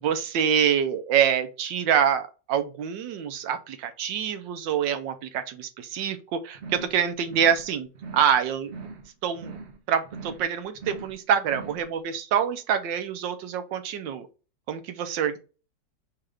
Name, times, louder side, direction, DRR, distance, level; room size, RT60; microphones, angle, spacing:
voice 1, 0.0-7.9 8.1-8.7 9.2-9.5 9.9-14.3 14.7-15.4, right 8 dB, 80° right, 1.4 m, -26 dB
sound 1, 6.5-7.0 7.2-7.7 7.9-8.4 8.6-9.1 9.3-9.8 10.0-10.5 10.7-11.2 11.4-11.9, right 4 dB, 65° right, 0.6 m, -41 dB
4.5 x 2.5 x 4.7 m
omnidirectional pair, 2.0 m